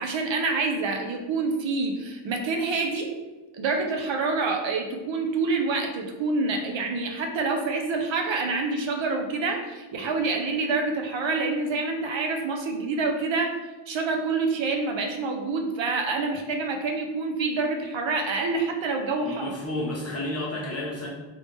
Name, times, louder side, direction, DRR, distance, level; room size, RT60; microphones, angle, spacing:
voice 1, 0.0-3.1 3.6-13.5 13.9-19.5, right 3 dB, 70° right, 3 dB, 0.6 m, -27 dB
voice 2, 19.2-21.1, left 1 dB, 30° left, -4 dB, 0.9 m, -31 dB
3.1 x 2.8 x 3.2 m, 1.2 s
wide cardioid pair, 105°, 49 cm